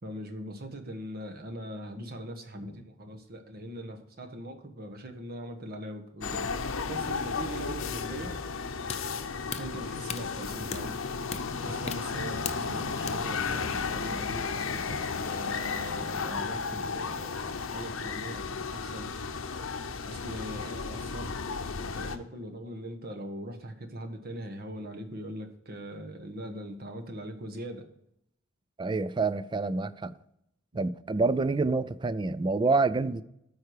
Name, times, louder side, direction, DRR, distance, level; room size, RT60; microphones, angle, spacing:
voice 1, 0.0-8.3 9.6-11.0 11.6-19.5 20.0-21.3 21.6-27.8, right 1 dB, 50° right, 1.3 m, -41 dB
sound 1, 6.2-22.2, left 5 dB, 90° left, 0.8 m, -34 dB
sound 2, 7.9-13.1, left 6 dB, 35° left, 0.6 m, -41 dB
voice 2, 28.8-30.1 30.8-33.2, right 3 dB, 25° right, 0.4 m, -27 dB
13.0 x 4.8 x 4.8 m
head